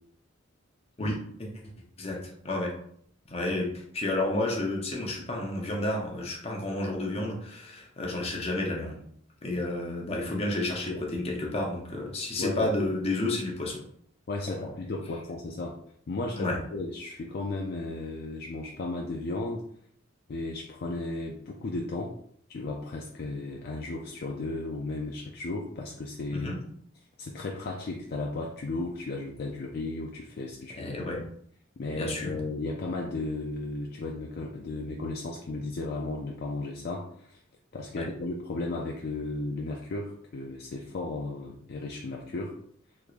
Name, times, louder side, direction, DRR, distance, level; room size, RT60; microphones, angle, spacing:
voice 1, 1.0-1.5 2.0-2.7 3.3-3.7 3.9-9.0 9.4-13.8 14.6-14.7 16.3-16.6 26.3-26.6 30.8-31.2 31.9-32.4 37.9-38.1, left 2 dB, 30° left, -1 dB, 0.7 m, -31 dB
voice 2, 14.3-15.8 16.1-19.6 20.3-22.1 22.5-26.5 27.2-31.2 31.8-37.4 37.7-42.6, left 2 dB, 50° left, 0 dB, 0.4 m, -35 dB
3.6 x 3.0 x 2.4 m, 0.65 s
head